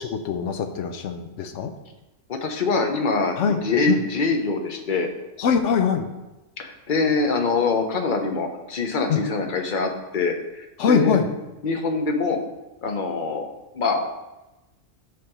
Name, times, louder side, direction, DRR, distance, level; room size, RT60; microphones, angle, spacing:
voice 1, 0.0-1.7 3.4-3.6 3.9-4.0 5.4-6.1 9.1-9.2 10.8-11.3, left 6 dB, 70° left, 7 dB, 1.0 m, -22 dB
voice 2, 2.3-5.1 6.6-11.2 11.6-12.4 12.8-14.1, left 3 dB, 45° left, 5 dB, 0.9 m, -24 dB
8.3 x 3.5 x 5.9 m, 1.0 s
omnidirectional pair, 1.3 m